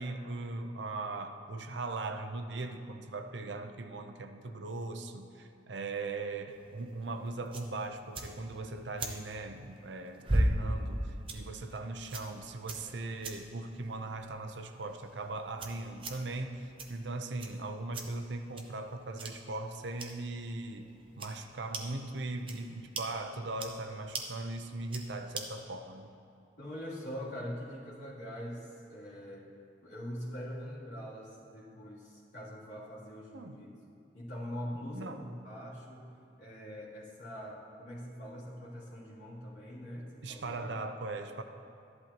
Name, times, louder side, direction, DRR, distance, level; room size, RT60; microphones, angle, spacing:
voice 1, 0.0-26.1 33.3-33.6 34.9-35.2 40.2-41.4, right 2 dB, 75° right, 7 dB, 0.7 m, -39 dB
sound 1, 6.5-25.7, right 1 dB, 30° right, 0.8 m, -40 dB
voice 2, 26.6-29.5 29.8-33.7 34.1-36.1 36.4-40.7, equal, 80° left, -8 dB, 2.9 m, -43 dB
13.5 x 11.0 x 2.9 m, 2.6 s
head